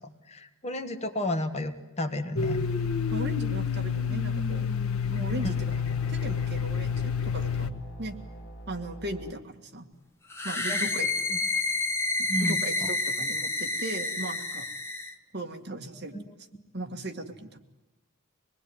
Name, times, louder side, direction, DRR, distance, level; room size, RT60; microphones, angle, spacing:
voice 1, 0.3-2.7 10.7-10.8 11.3-11.4 12.3-12.9 16.1-16.2, left 1 dB, 30° left, 7 dB, 1.5 m, -32 dB
Domestic sounds home sounds, 2.4-7.7, left 6 dB, 85° left, 1.2 m, -29 dB
voice 2, 3.1-4.7 5.1-5.7 6.1-8.2 8.7-9.9 10.4-11.1 12.2-14.7 15.3-16.2 16.7-17.6, right 1 dB, 50° right, 5 dB, 2.0 m, -37 dB
sound 1, 5.2-9.3, right 1 dB, 45° left, 4.3 m, -44 dB
sound 2, 10.3-15.1, left 2 dB, 10° left, 1.4 m, -29 dB
26.0 x 20.5 x 9.7 m, 1.0 s
head